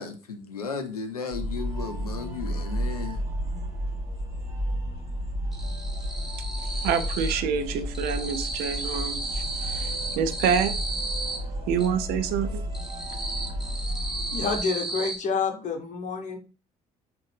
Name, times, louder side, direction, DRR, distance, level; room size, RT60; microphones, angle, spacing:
voice 1, 0.0-3.2, left 5 dB, 85° left, 0.5 m, -34 dB
sound 1, 1.3-14.6, equal, 35° right, 1.9 m, -32 dB
sound 2, 1.9-2.0 2.3-3.6 3.9-4.6 4.8-7.5 7.7-11.9 12.3-15.2, right 2 dB, ahead, 1.1 m, -34 dB
voice 2, 5.6-6.3 6.6-10.7 11.2-11.3 11.7-12.7 13.2-13.3, right 7 dB, 55° right, 0.5 m, -28 dB
voice 3, 14.3-16.4, left 4 dB, 40° left, 1.0 m, -28 dB
3.8 x 2.5 x 3.3 m
figure-of-eight pair, 50°, 19 cm